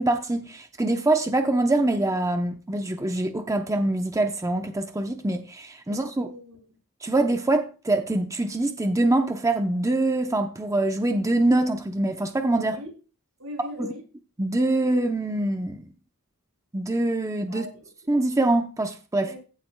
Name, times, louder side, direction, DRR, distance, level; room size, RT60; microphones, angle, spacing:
voice 1, 0.0-6.3 7.0-12.8 13.8-13.9 14.4-15.8 16.7-17.7 18.1-19.3, right 2 dB, 15° right, 0.7 m, -24 dB
voice 2, 5.9-6.6 12.6-12.9 13.4-14.0 17.5-17.9 19.2-19.4, left 1 dB, 90° right, 5.6 m, -40 dB
15.0 x 7.5 x 2.2 m
head